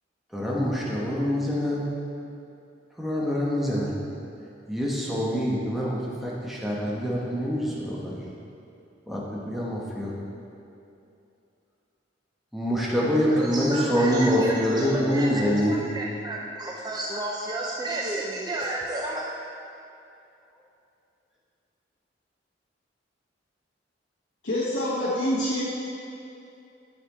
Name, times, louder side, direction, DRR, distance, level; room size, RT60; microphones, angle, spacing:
voice 1, 0.3-1.9 3.0-3.9 4.7-8.2 9.1-10.1 12.5-15.8, equal, ahead, -5 dB, 1.0 m, -25 dB
voice 2, 13.2-19.3, right 2 dB, 20° right, -2 dB, 0.4 m, -32 dB
voice 3, 24.4-25.6, left 1 dB, 80° left, -8 dB, 0.9 m, -26 dB
9.9 x 4.2 x 4.1 m, 2.7 s
head